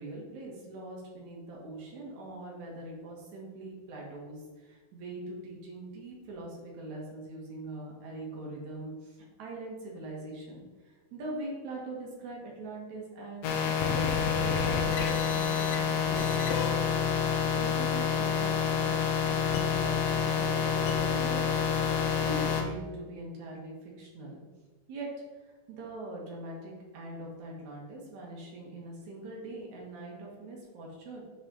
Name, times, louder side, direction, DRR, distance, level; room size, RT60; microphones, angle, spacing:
voice 1, 0.0-14.1 14.4-16.4 16.7-17.0 17.5-21.5 22.2-24.4 24.9-25.1 25.4-31.2, right 2 dB, 65° right, -2 dB, 3.2 m, -42 dB
sound 1, 13.4-22.6, left 7 dB, 65° left, 1.7 m, -28 dB
8.6 x 6.6 x 4.1 m, 1.3 s
omnidirectional pair, 3.7 m